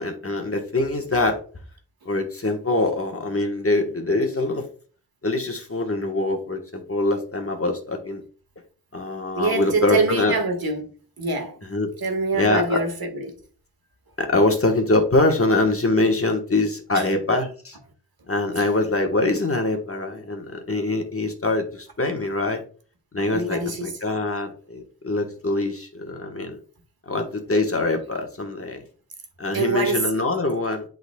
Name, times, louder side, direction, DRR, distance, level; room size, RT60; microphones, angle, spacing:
voice 1, 0.0-1.4 2.0-4.6 5.2-8.2 8.9-10.3 11.7-11.9 12.3-12.8 14.2-17.8 18.3-22.6 23.1-26.6 27.1-28.8 29.4-30.8, left 2 dB, 35° left, 1.2 m, -23 dB
voice 2, 9.3-10.9 11.2-11.6 12.0-13.4 16.9-17.1 18.6-18.7 23.3-23.9 29.5-30.1, right 3 dB, 60° right, 1.6 m, -25 dB
11.0 x 3.9 x 2.3 m
wide cardioid pair, 100°, 40 cm